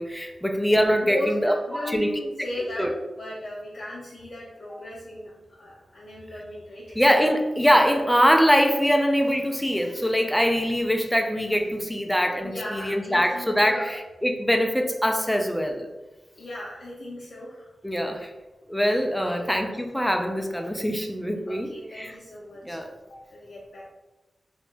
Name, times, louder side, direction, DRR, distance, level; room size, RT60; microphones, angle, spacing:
voice 1, 0.0-2.1 2.8-2.9 7.0-15.9 17.8-18.3 18.7-22.2 22.6-22.9, equal, ahead, 4 dB, 0.3 m, -23 dB
voice 2, 1.0-2.9 3.2-7.0 12.4-14.0 16.4-17.7 19.2-19.5 21.5-22.8 23.1-23.9, left 1 dB, 55° left, -6 dB, 0.5 m, -37 dB
2.9 x 2.1 x 3.2 m, 1.1 s
wide cardioid pair, 105°, 0 cm